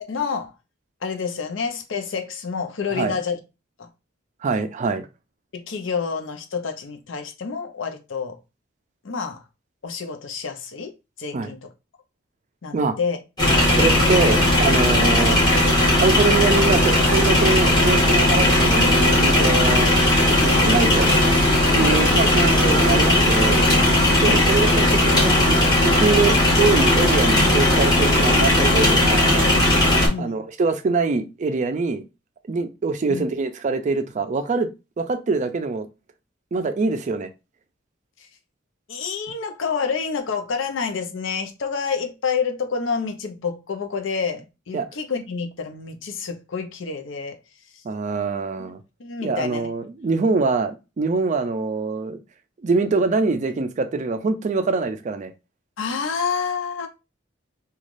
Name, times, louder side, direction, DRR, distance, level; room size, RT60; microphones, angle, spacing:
voice 1, 0.1-0.5 1.0-3.4 3.8-3.9 5.5-8.4 9.0-9.4 9.8-10.9 11.2-11.6 12.6-13.2 15.0-15.2 21.8-22.1 24.3-24.5 30.0-30.4 33.1-33.2 38.9-47.4 49.0-49.7 55.8-56.9, left 5 dB, 80° left, 0.6 m, -28 dB
voice 2, 4.4-5.1 11.3-11.5 12.7-13.0 13.7-15.4 16.0-19.9 20.3-21.1 21.7-23.7 24.2-29.3 30.2-32.0 32.5-34.7 35.0-35.9 36.5-37.3 44.7-44.9 47.8-48.8 49.2-52.2 52.6-55.3, right 4 dB, 40° right, 0.4 m, -24 dB
sound 1, 13.4-30.1, left 1 dB, 20° left, 1.2 m, -17 dB
3.2 x 2.3 x 2.5 m
head